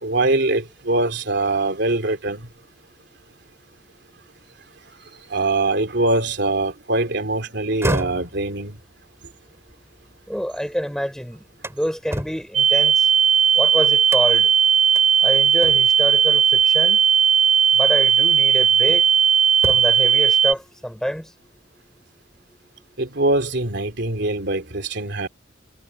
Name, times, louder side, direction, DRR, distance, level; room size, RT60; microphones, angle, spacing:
voice 1, 0.0-2.5 5.3-8.8 23.0-25.3, right 2 dB, 65° right, 3.2 m, -23 dB
sound 1, 7.6-10.7 11.1-13.5 14.1-14.5 15.0-15.1 15.6-16.1 17.3-17.5 18.1-19.2 19.5-20.1, right 1 dB, 15° right, 4.5 m, -32 dB
voice 2, 10.3-13.1 13.6-14.5 15.2-17.0 17.7-19.0 19.7-21.3, equal, 5° left, 5.6 m, -27 dB
sound 2, 12.5-20.5, right 8 dB, 35° right, 0.9 m, -16 dB
head